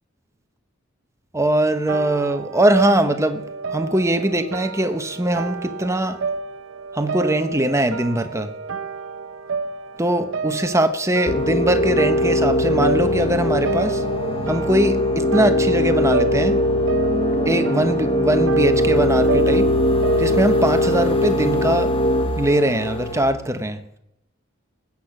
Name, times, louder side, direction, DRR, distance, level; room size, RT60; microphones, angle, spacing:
voice 1, 1.3-3.4 3.7-6.2 6.9-8.5 10.0-14.0 14.5-16.6 17.5-19.7 20.2-21.9 22.4-23.8, right 1 dB, 15° right, 1.1 m, -21 dB
sound 1, 1.7-21.0, right 4 dB, 80° right, 0.8 m, -31 dB
sound 2, 11.3-23.2, left 1 dB, 30° left, 1.4 m, -20 dB
19.5 x 8.5 x 6.0 m
head